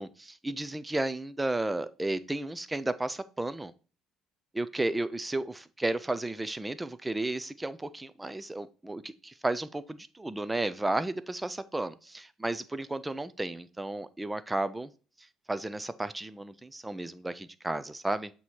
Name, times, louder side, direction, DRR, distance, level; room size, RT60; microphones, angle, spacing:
voice 1, 0.0-3.7 4.5-14.9 15.5-18.3, right 2 dB, 10° right, 0.4 m, -33 dB
7.9 x 2.9 x 4.3 m
supercardioid pair, 90°, 0 cm